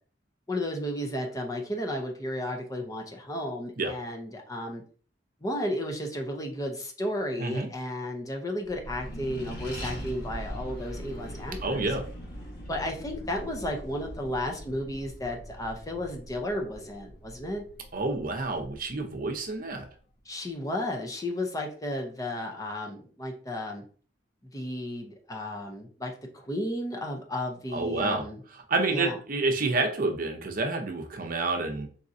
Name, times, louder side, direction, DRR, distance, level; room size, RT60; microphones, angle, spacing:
voice 1, 0.5-4.8 5.4-11.9 12.7-17.6 20.3-23.8 24.5-28.4 28.9-29.2, left 1 dB, 20° left, 2 dB, 0.6 m, -33 dB
Accelerating revving vroom, 8.6-19.6, equal, 55° left, 1.5 m, -41 dB
voice 2, 11.6-12.0 17.9-19.9 27.7-28.2 28.5-31.9, right 3 dB, 50° right, 4 dB, 0.7 m, -29 dB
4.0 x 3.7 x 2.7 m, 0.42 s
head